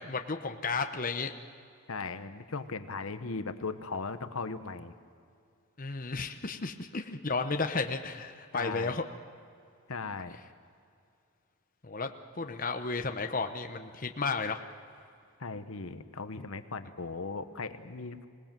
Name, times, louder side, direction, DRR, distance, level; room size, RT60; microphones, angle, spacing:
voice 1, 0.0-1.3 5.8-9.0 11.8-14.6, left 4 dB, 40° left, 5 dB, 0.9 m, -33 dB
voice 2, 1.9-4.9 8.5-9.0 9.9-10.4 15.4-18.3, left 4 dB, 70° left, 10 dB, 1.1 m, -38 dB
26.0 x 19.0 x 7.5 m, 2.4 s
head